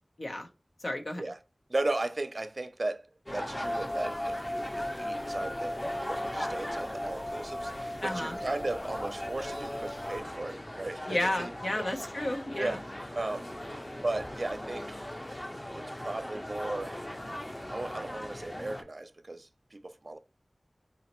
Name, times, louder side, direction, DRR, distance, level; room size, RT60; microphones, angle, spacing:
voice 1, 0.8-1.2 8.0-8.4 11.1-12.8, left 1 dB, 80° left, 0.7 m, -32 dB
voice 2, 1.7-3.1 3.3-5.8 6.1-7.7 8.0-11.8 12.6-12.8 13.1-13.5 14.0-15.1 15.7-17.0 17.7-20.2, right 2 dB, 60° right, 0.4 m, -36 dB
sound 1, 3.3-18.8, left 1 dB, 25° left, 0.6 m, -39 dB
sound 2, 3.6-10.2, left 1 dB, 60° left, 1.9 m, -38 dB
4.1 x 2.9 x 2.9 m
wide cardioid pair, 45°, 0 cm